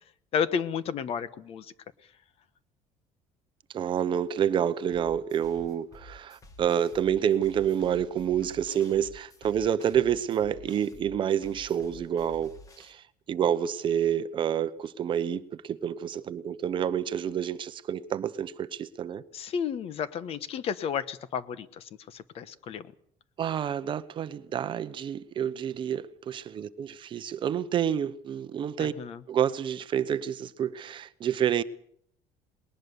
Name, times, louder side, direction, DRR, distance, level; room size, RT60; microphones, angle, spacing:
voice 1, 0.3-1.6 19.3-21.8 22.1-22.8 29.0-29.2, left 7 dB, 45° left, 1.1 m, -31 dB
voice 2, 3.7-19.2 23.4-28.9 29.3-31.6, right 9 dB, 35° right, 0.8 m, -28 dB
sound 1, 4.9-12.9, left 1 dB, 25° left, 2.2 m, -51 dB
20.5 x 19.0 x 6.9 m
cardioid pair, 165°, 14 cm